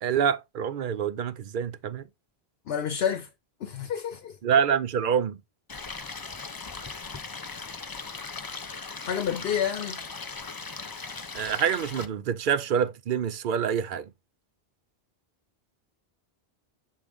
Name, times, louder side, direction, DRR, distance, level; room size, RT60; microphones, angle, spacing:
voice 1, 0.0-2.0 4.4-5.4 11.3-14.0, right 8 dB, 60° right, 0.7 m, -26 dB
voice 2, 2.7-3.3 3.6-4.4 9.0-10.0, left 8 dB, 75° left, 0.9 m, -29 dB
Stream, 5.7-12.1, left 4 dB, 30° left, 0.4 m, -38 dB
7.3 x 3.7 x 3.5 m
omnidirectional pair, 1.0 m